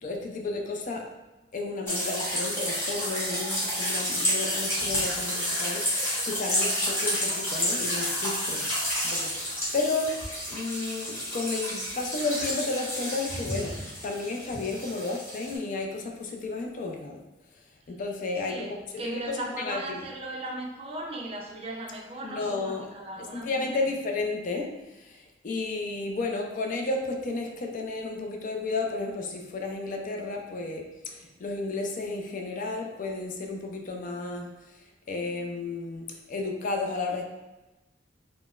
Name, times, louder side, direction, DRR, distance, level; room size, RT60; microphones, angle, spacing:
voice 1, 0.0-1.0 1.5-8.6 9.0-10.2 10.5-13.8 14.0-17.2 17.9-18.8 19.0-20.1 22.2-22.9 23.2-34.5 35.1-37.2, left 3 dB, 45° left, 2 dB, 0.4 m, -32 dB
sound 1, 1.9-15.6, equal, 15° left, 0.9 m, -30 dB
voice 2, 18.5-23.5, right 1 dB, 30° right, 0 dB, 0.4 m, -37 dB
3.9 x 2.0 x 2.3 m, 1.1 s
head